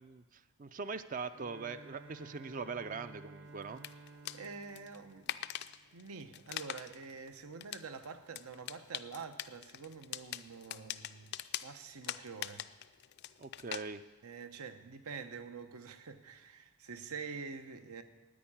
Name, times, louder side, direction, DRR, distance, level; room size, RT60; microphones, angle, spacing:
voice 1, 0.0-3.8 13.4-14.0, right 4 dB, 35° right, 0.4 m, -42 dB
Bowed string instrument, 1.3-6.1, right 3 dB, 60° right, 0.8 m, -54 dB
sound 1, 3.6-13.8, left 12 dB, 50° left, 0.4 m, -44 dB
voice 2, 4.3-5.4 5.9-12.7 14.2-18.0, right 5 dB, 85° right, 0.9 m, -47 dB
10.0 x 9.6 x 8.7 m
head